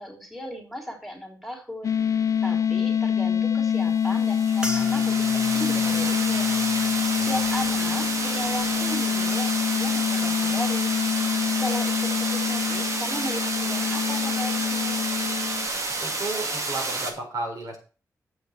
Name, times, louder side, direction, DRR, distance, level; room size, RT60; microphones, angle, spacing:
voice 1, 0.0-2.0 2.4-6.6 7.2-10.9 11.6-15.0, equal, ahead, 1 dB, 3.4 m, -36 dB
sound 1, 1.8-15.7, left 8 dB, 60° left, 0.6 m, -25 dB
sound 2, 4.0-17.1, right 2 dB, 55° right, 2.2 m, -30 dB
sound 3, 4.6-9.2 9.5-10.1 10.7-11.0, left 1 dB, 15° right, 2.1 m, -40 dB
voice 2, 16.0-17.8, right 3 dB, 75° right, 1 dB, 4.2 m, -33 dB
7.7 x 5.9 x 7.2 m, 0.36 s
cardioid pair, 90°, 6 cm